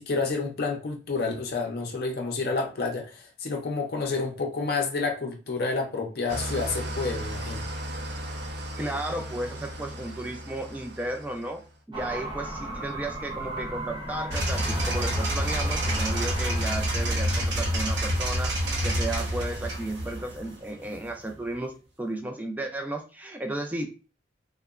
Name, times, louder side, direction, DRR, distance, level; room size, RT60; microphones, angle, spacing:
voice 1, 0.0-7.6, left 4 dB, 55° left, 1 dB, 0.5 m, -29 dB
Engine starting / Idling, 6.3-11.7, equal, 65° right, 0.5 m, -36 dB
voice 2, 8.8-23.9, right 1 dB, 10° right, 4 dB, 0.3 m, -34 dB
sound 1, 11.9-20.6, right 1 dB, 25° right, 0.7 m, -37 dB
sound 2, 14.3-21.3, equal, 85° right, 0.9 m, -28 dB
2.9 x 2.1 x 2.4 m, 0.35 s
head